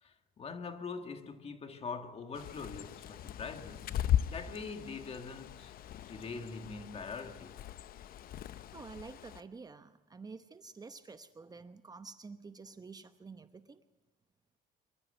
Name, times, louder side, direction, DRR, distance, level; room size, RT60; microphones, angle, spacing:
voice 1, 0.0-4.0 4.2-5.7 6.1-7.6, left 4 dB, 35° left, 1.7 m, -43 dB
Bird, 2.3-9.4, left 11 dB, 60° left, 0.7 m, -38 dB
voice 2, 8.7-13.8, right 4 dB, 20° right, 0.9 m, -49 dB
24.0 x 13.5 x 8.1 m
cardioid pair, 110°, 17 cm